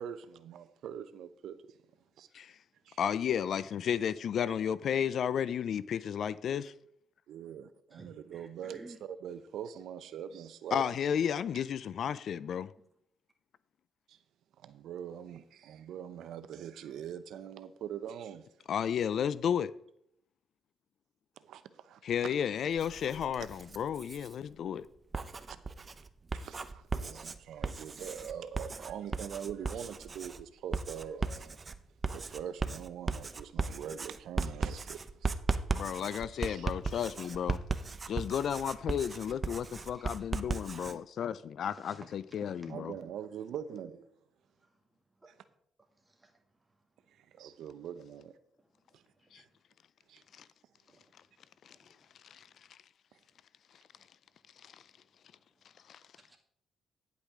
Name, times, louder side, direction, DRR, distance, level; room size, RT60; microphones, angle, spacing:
voice 1, 0.0-1.8 2.2-2.3 2.9-3.0 7.3-10.9 14.1-14.2 14.6-18.5 21.4-22.3 25.5-25.6 26.3-31.6 32.1-35.4 36.4-36.7 42.7-44.1 47.2-48.4 48.9-49.0 49.3-49.5 50.1-50.2, right 9 dB, 75° right, 0.6 m, -43 dB
voice 2, 3.0-6.7 10.7-12.7 18.7-19.7 22.0-24.9 35.7-37.6 38.1-42.9 49.3-49.4 50.4-50.5 51.7-51.8 52.2-52.4 54.6-54.7 55.9-56.0, left 8 dB, 65° left, 0.4 m, -33 dB
voice 3, 7.9-9.0 36.9-37.1 38.7-38.8 39.9-40.3 41.6-42.1 42.4-42.7 44.6-44.8 45.2-45.3 46.0-46.4 47.3-47.4 49.2-49.6 50.9-51.3 51.7-51.9 52.3-52.5 56.2-56.4, right 2 dB, 15° right, 2.1 m, -56 dB
Writing, 22.7-24.3 25.0-41.0, right 4 dB, 30° right, 0.6 m, -37 dB
10.0 x 8.2 x 3.6 m
cardioid pair, 90°, 0 cm